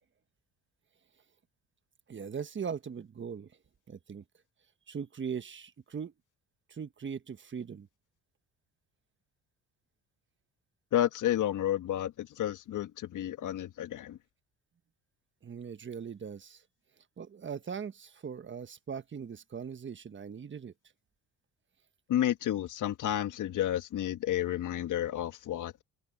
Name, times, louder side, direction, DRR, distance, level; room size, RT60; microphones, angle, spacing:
voice 1, 2.1-3.5 3.9-4.2 4.9-6.1 6.7-7.9 15.4-16.6 17.2-20.7, right 6 dB, 35° right, 1.4 m, -40 dB
voice 2, 10.9-14.2 22.1-25.8, left 12 dB, 60° left, 1.7 m, -31 dB
supercardioid pair, 80°, 34 cm